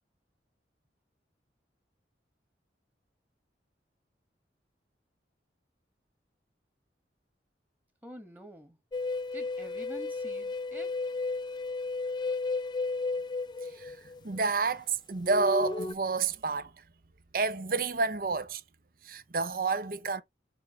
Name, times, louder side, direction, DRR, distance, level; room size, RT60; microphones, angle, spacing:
voice 1, 8.0-8.8 9.3-11.0, equal, 10° right, 1.4 m, -47 dB
sound 1, 8.9-14.4 15.2-15.9, left 3 dB, 25° left, 0.3 m, -33 dB
voice 2, 13.6-16.8 17.3-18.6 19.0-20.2, right 4 dB, 50° right, 0.7 m, -30 dB
7.0 x 3.5 x 4.6 m
head